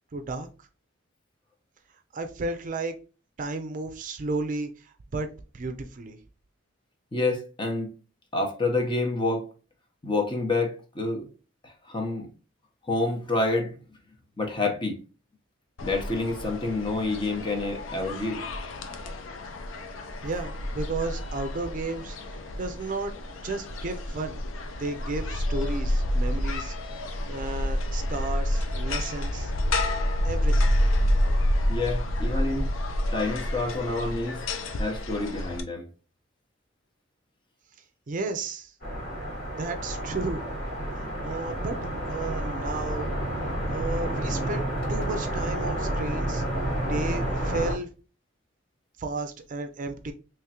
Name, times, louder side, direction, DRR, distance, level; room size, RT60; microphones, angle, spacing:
voice 1, 0.1-0.5 2.1-2.9 3.4-5.3 5.5-6.2 20.2-22.2 22.6-23.1 23.4-24.4 24.8-26.7 27.3-29.5 30.2-30.7 38.1-38.7 39.6-40.4 41.0-43.1 43.7-46.4 46.8-47.9 49.0-50.1, right 3 dB, 40° right, 0.4 m, -33 dB
voice 2, 7.1-7.9 8.3-9.5 10.0-11.3 11.6-12.3 12.9-13.8 14.4-15.0 15.8-18.4 31.7-32.7 33.1-34.4 34.8-35.9, left 2 dB, 25° left, 0.8 m, -28 dB
sound 1, 15.8-35.6, left 1 dB, 90° left, 0.6 m, -29 dB
sound 2, 38.8-47.8, right 1 dB, 55° left, 2.1 m, -30 dB
3.5 x 3.1 x 2.8 m
head